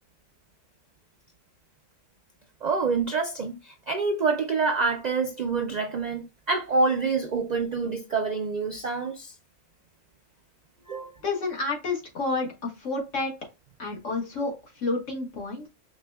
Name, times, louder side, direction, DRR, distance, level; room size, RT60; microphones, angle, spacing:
voice 1, 2.6-9.3 10.9-11.1, right 4 dB, 60° right, 0.4 m, -27 dB
voice 2, 11.2-13.3 13.8-15.7, left 3 dB, 75° left, 1.8 m, -30 dB
5.0 x 3.3 x 2.2 m
omnidirectional pair, 1.3 m